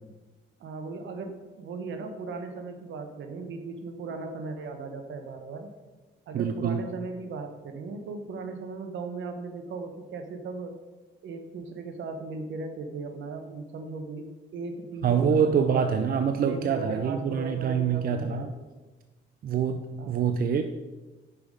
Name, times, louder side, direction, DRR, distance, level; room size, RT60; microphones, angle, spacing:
voice 1, 0.6-5.7 6.3-10.8 11.2-16.0 16.4-18.8 20.0-20.2, right 3 dB, 70° right, 6 dB, 1.0 m, -37 dB
voice 2, 6.3-6.8 15.0-18.5 19.4-20.6, right 7 dB, 50° right, 8 dB, 0.5 m, -25 dB
6.1 x 4.9 x 5.1 m, 1.2 s
cardioid pair, 90°, 20 cm